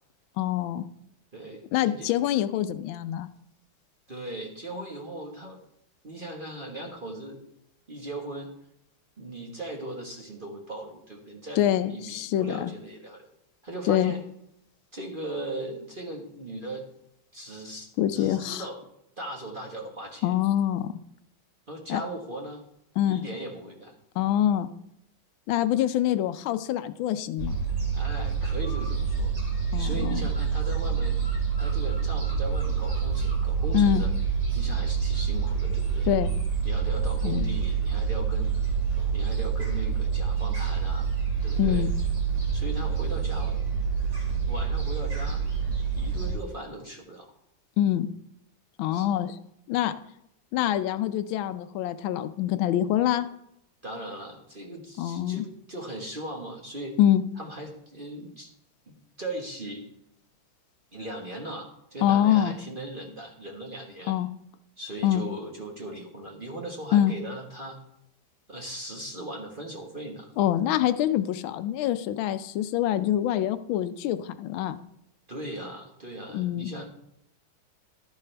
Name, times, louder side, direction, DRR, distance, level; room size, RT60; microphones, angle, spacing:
voice 1, 0.4-0.9 1.7-3.3 11.6-12.7 13.9-14.1 18.0-18.6 20.2-20.9 21.9-22.0 23.0-23.2 24.2-24.7 25.5-27.6 29.7-30.2 33.7-34.0 36.1-36.3 37.2-37.4 41.6-41.9 47.8-48.1 48.8-49.4 49.7-49.9 50.5-53.3 55.0-55.4 57.0-57.2 62.0-62.6 64.1-64.3 65.0-65.2 66.9-67.1 70.4-74.8 76.3-76.7, left 11 dB, 85° left, 10 dB, 1.4 m, -25 dB
voice 2, 1.3-2.1 4.1-5.6 6.0-7.4 7.9-8.5 9.2-13.3 13.6-14.2 14.9-16.8 17.3-18.8 19.2-20.3 21.7-22.6 23.1-23.9 27.9-29.3 29.8-31.2 31.6-34.1 34.5-36.1 36.6-38.6 39.1-41.1 41.4-41.9 42.5-43.6 44.5-45.4 45.9-47.3 48.9-49.1 53.8-57.0 57.4-58.5 58.9-59.8 60.9-64.1 64.8-67.8 68.5-70.3 75.3-76.8, right 1 dB, 30° right, 1 dB, 1.3 m, -38 dB
Gull seagull, 27.4-46.3, right 6 dB, 60° right, 3.9 m, -27 dB
12.5 x 10.5 x 3.3 m, 0.78 s
omnidirectional pair, 2.2 m